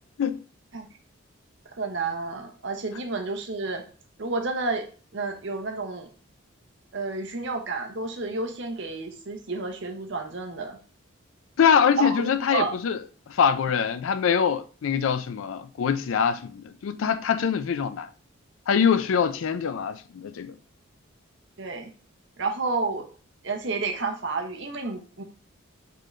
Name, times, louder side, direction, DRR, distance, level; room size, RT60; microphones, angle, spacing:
voice 1, 1.8-3.8 4.2-4.9 5.1-6.1 6.9-10.8 12.0-12.7 21.6-21.9 22.4-23.1 23.4-25.2, right 3 dB, 55° right, 0.8 m, -30 dB
voice 2, 11.6-13.0 13.3-18.1 18.7-20.5, left 7 dB, 70° left, 0.4 m, -24 dB
3.7 x 3.7 x 3.2 m
head